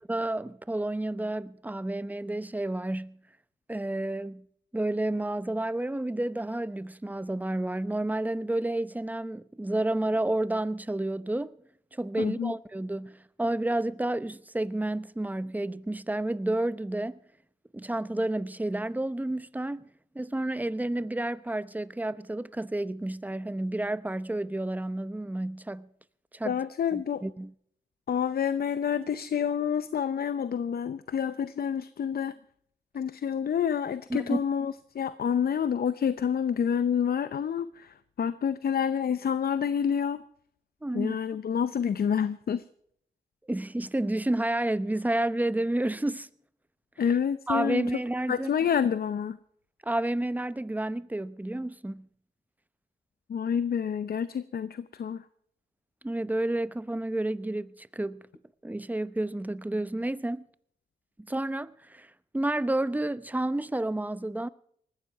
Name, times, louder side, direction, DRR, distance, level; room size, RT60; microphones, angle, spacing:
voice 1, 0.1-3.2 3.7-4.4 4.7-11.6 11.9-17.2 17.7-25.9 26.3-26.6 26.9-27.5 34.1-34.4 40.8-41.2 43.5-46.3 47.5-48.5 49.8-52.1 56.0-58.2 58.6-60.5 61.3-64.5, right 1 dB, 10° right, 0.8 m, -30 dB
voice 2, 12.2-12.5 26.4-27.2 28.1-32.3 32.9-40.2 40.9-42.6 47.0-48.0 48.3-49.4 53.3-55.2, left 8 dB, 60° left, 0.7 m, -28 dB
19.5 x 15.0 x 4.7 m
supercardioid pair, 50°, 18 cm